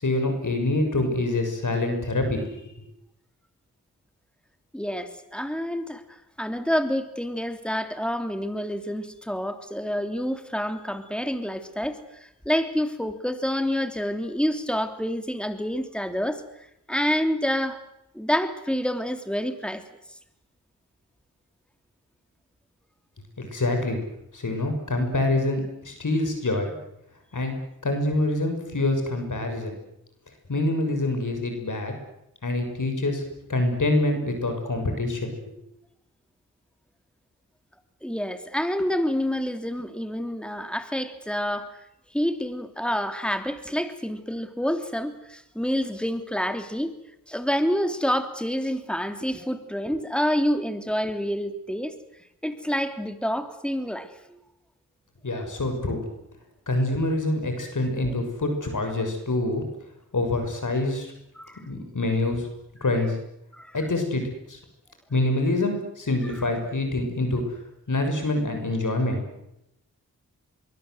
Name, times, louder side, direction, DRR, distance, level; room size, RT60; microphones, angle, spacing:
voice 1, 0.0-2.7 23.4-24.0 24.3-26.7 27.3-27.6 27.8-29.8 30.5-31.9 32.4-33.2 33.5-35.5 55.2-56.0 56.7-59.6 60.1-61.1 61.7-62.4 62.8-63.2 63.7-64.2 64.5-64.6 65.1-67.4 67.9-69.2, left 2 dB, 60° left, 5 dB, 6.5 m, -25 dB
voice 2, 4.7-17.8 18.1-19.8 38.0-41.8 42.1-47.0 47.3-51.9 52.4-54.2 61.4-61.6 63.5-63.7 66.2-66.3, equal, 5° left, 8 dB, 3.1 m, -28 dB
24.0 x 23.5 x 8.0 m, 0.81 s
cardioid pair, 60°, 35 cm